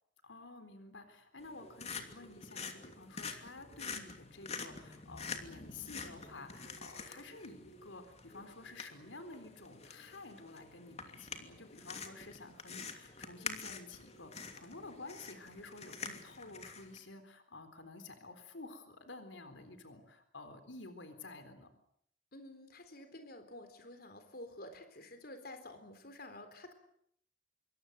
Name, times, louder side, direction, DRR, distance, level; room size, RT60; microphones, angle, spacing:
voice 1, 0.2-21.7, left 3 dB, 75° left, 9 dB, 3.8 m, -51 dB
sound 1, 1.4-17.0, left 5 dB, 35° left, 2.8 m, -47 dB
voice 2, 22.3-26.7, left 1 dB, 50° left, 8 dB, 3.9 m, -50 dB
26.0 x 24.0 x 8.1 m, 0.70 s
head